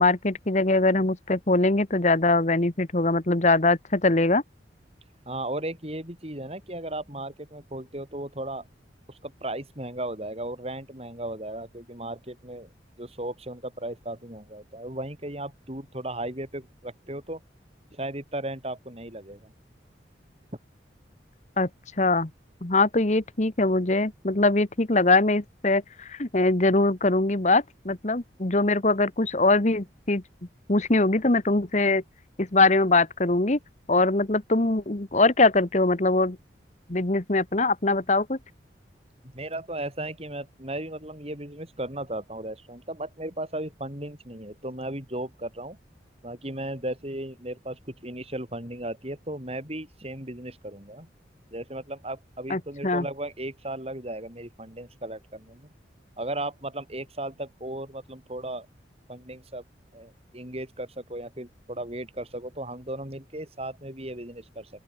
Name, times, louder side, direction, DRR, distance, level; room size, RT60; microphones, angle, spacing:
voice 1, 0.0-4.4 21.6-21.7 22.0-22.3 22.6-30.2 30.7-32.0 32.4-33.6 33.9-36.4 36.9-38.4 52.5-53.0, left 2 dB, 40° left, 1.4 m, -22 dB
voice 2, 5.3-8.6 9.1-12.7 13.0-17.4 17.9-19.5 39.3-45.8 46.2-51.1 51.5-55.7 56.2-58.7 59.1-59.6 59.9-64.7, right 1 dB, 35° right, 5.5 m, -36 dB
open air
head